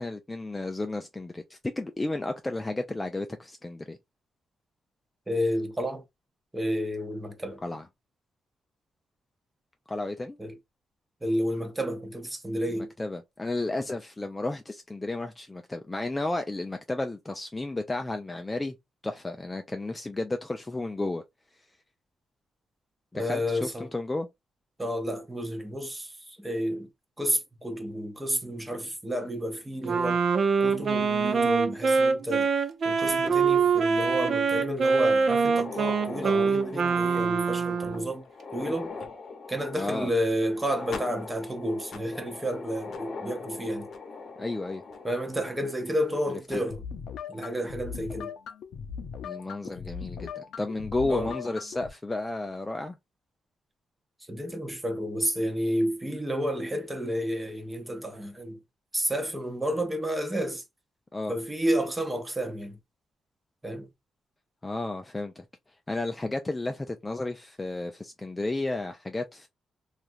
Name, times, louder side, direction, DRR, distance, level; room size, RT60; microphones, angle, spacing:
voice 1, 0.0-4.0 7.6-7.8 9.9-10.4 12.7-18.7 19.0-21.2 23.1-24.3 39.7-40.1 44.4-44.8 46.5-46.6 49.2-53.0 61.1-61.3 64.6-65.4 65.9-69.5, left 2 dB, 15° left, 0.3 m, -32 dB
voice 2, 5.3-6.0 6.5-7.6 10.4-10.6 11.2-12.9 23.1-23.9 24.8-26.9 27.2-30.3 30.6-32.5 32.8-38.2 38.5-39.0 39.5-43.9 45.0-46.8 47.3-48.3 51.1-51.3 54.3-58.6 58.9-60.6 61.3-62.8 63.6-63.9, equal, 10° right, 0.7 m, -30 dB
Wind instrument woodwind instrument, 29.8-38.1, right 5 dB, 45° right, 0.4 m, -24 dB
sound 1, 35.4-46.1 46.5-46.6 47.4-47.5 48.0-48.1 49.4-49.7, left 4 dB, 50° left, 0.8 m, -42 dB
sound 2, 46.7-51.9, left 7 dB, 80° left, 0.5 m, -39 dB
3.1 x 2.4 x 2.6 m
cardioid pair, 130°, 0 cm